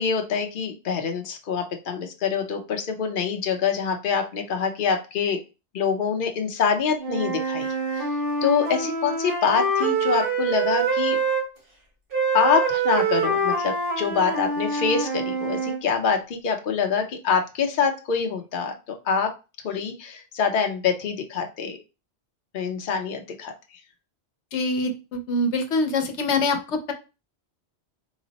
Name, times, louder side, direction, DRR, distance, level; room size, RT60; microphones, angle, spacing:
voice 1, 0.0-5.4 5.7-8.1 8.4-11.2 12.3-18.7 19.0-19.3 19.6-21.8 22.5-23.5, left 6 dB, 55° left, 4 dB, 0.8 m, -25 dB
Wind instrument woodwind instrument, 7.0-11.4 12.1-15.8, right 3 dB, 50° right, 1.5 m, -25 dB
voice 2, 24.5-26.9, left 2 dB, 90° left, 5 dB, 1.0 m, -24 dB
4.0 x 2.0 x 3.9 m, 0.30 s
omnidirectional pair, 1.1 m